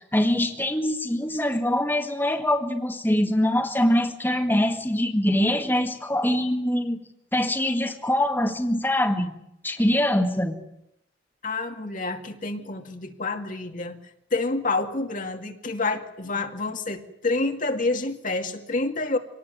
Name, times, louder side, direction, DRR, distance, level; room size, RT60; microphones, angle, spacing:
voice 1, 0.1-7.0 7.3-9.3 9.6-10.6, left 1 dB, 10° left, 3 dB, 1.9 m, -23 dB
voice 2, 11.4-14.0 14.3-19.2, left 3 dB, 45° left, 4 dB, 2.4 m, -28 dB
25.5 x 19.0 x 9.5 m, 0.79 s
head